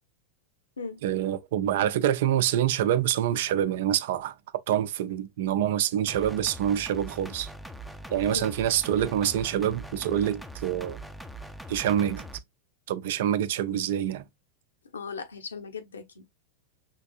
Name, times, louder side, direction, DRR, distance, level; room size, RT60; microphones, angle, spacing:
voice 1, 1.0-4.3 4.7-7.5 8.1-11.0 11.7-12.2 12.9-14.2, right 10 dB, 55° right, 0.5 m, -26 dB
sound 1, 6.1-12.4, right 1 dB, ahead, 0.6 m, -42 dB
voice 2, 14.9-16.2, left 5 dB, 70° left, 1.1 m, -38 dB
5.8 x 3.4 x 2.4 m
figure-of-eight pair, 90°, 0 cm